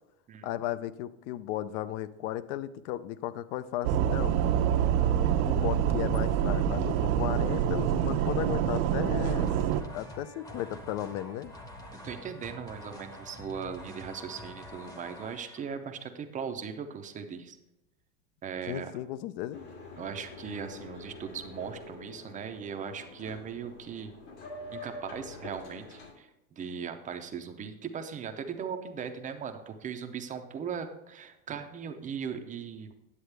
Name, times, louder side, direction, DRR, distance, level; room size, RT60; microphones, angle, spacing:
voice 1, 0.4-4.4 5.5-9.5 9.9-11.5 18.7-19.7, left 13 dB, 55° left, 16 dB, 0.6 m, -35 dB
sound 1, 3.8-9.8, right 9 dB, 75° right, 0.8 m, -26 dB
sound 2, 9.2-15.8, equal, 10° left, 0.8 m, -46 dB
voice 2, 12.0-17.6 18.4-18.9 20.0-24.1 24.7-32.9, right 7 dB, 20° right, 6 dB, 0.5 m, -39 dB
Boat Water vehicle, 19.5-26.1, left 2 dB, 75° left, 2.7 m, -46 dB
9.8 x 7.9 x 3.3 m, 0.91 s
supercardioid pair, 140°, 44 cm